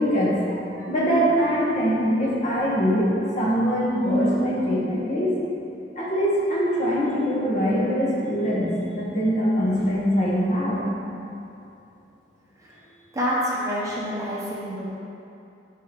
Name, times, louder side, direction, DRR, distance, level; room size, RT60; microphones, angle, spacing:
voice 1, 0.0-5.4 5.9-10.9, equal, 45° left, -6 dB, 1.2 m, -23 dB
voice 2, 13.1-14.9, equal, 20° right, -6 dB, 0.9 m, -27 dB
5.6 x 3.5 x 5.8 m, 2.7 s
head